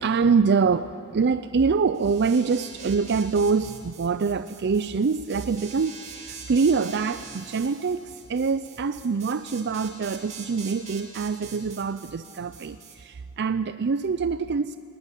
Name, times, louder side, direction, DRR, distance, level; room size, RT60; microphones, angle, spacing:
voice 1, 0.0-14.8, right 5 dB, 50° right, 12 dB, 0.5 m, -25 dB
sound 1, 1.9-13.0, right 5 dB, 30° right, 3.1 m, -44 dB
20.0 x 19.0 x 9.9 m, 2.5 s
head